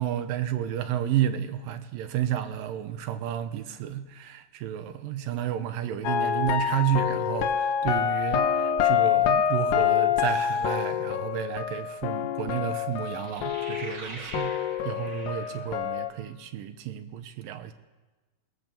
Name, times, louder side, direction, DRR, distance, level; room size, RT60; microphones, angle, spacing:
voice 1, 0.0-14.5 14.8-17.7, right 10 dB, 75° right, 10 dB, 2.2 m, -31 dB
sound 1, 6.0-14.1 14.3-16.1, left 9 dB, 80° left, 1.7 m, -26 dB
sound 2, 10.2-10.9 13.0-15.9, right 2 dB, 30° right, 2.8 m, -44 dB
20.5 x 20.0 x 7.0 m, 1.2 s
omnidirectional pair, 4.9 m